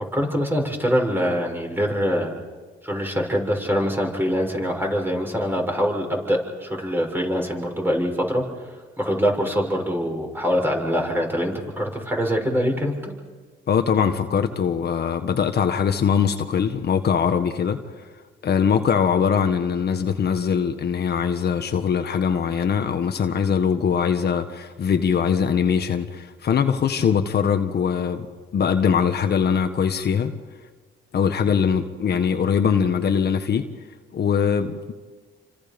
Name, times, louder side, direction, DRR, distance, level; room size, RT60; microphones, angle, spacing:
voice 1, 0.1-2.3 2.8-8.4 9.0-13.1, equal, 10° right, 1 dB, 6.5 m, -24 dB
voice 2, 13.7-17.8 18.4-28.3 28.5-30.3 31.1-33.7 34.1-34.9, left 7 dB, 55° left, 6 dB, 1.5 m, -22 dB
29.5 x 25.5 x 5.4 m, 1.4 s
cardioid pair, 90°, 20 cm